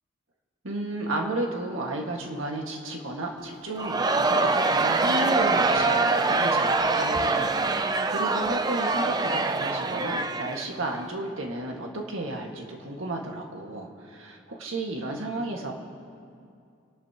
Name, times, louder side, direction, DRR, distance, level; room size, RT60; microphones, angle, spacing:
voice 1, 0.6-15.7, right 1 dB, 80° right, 0 dB, 1.8 m, -33 dB
Crowd, 3.8-11.0, right 3 dB, 20° right, 0.4 m, -24 dB
30.0 x 11.5 x 2.9 m, 2.4 s
head